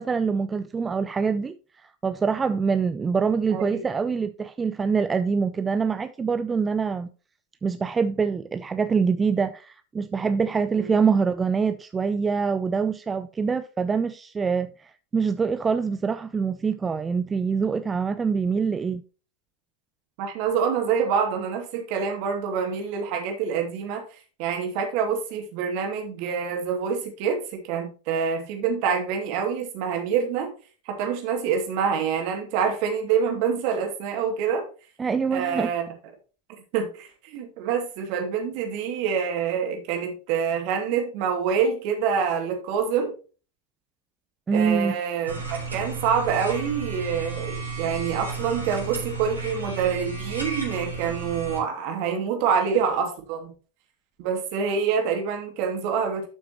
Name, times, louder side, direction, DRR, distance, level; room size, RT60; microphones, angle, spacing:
voice 1, 0.0-7.1 7.6-19.0 35.0-35.7 44.5-44.9, right 5 dB, 20° right, 0.4 m, -25 dB
voice 2, 3.5-3.8 10.8-10.9 20.2-24.0 24.4-30.5 30.9-34.6 35.3-35.8 36.7-43.2 44.5-53.5 54.2-56.3, right 7 dB, 50° right, 2.4 m, -26 dB
sound 1, 45.3-51.6, right 4 dB, 90° right, 3.7 m, -33 dB
12.0 x 6.0 x 3.0 m
figure-of-eight pair, 85°, 0 cm